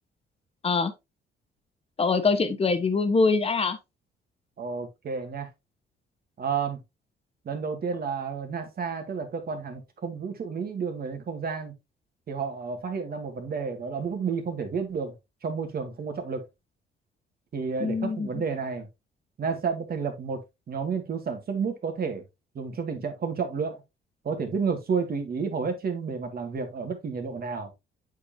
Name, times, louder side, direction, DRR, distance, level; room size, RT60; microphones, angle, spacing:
voice 1, 2.0-3.8 17.8-18.3, left 4 dB, 30° left, 1.2 m, -24 dB
voice 2, 4.6-5.5 6.4-6.8 7.5-11.7 12.3-15.1 15.4-16.5 17.5-18.9 19.4-20.4 20.7-22.2 22.6-23.8 24.2-27.7, right 5 dB, 50° right, 2.0 m, -31 dB
8.1 x 5.3 x 2.7 m
cardioid pair, 90°, 20 cm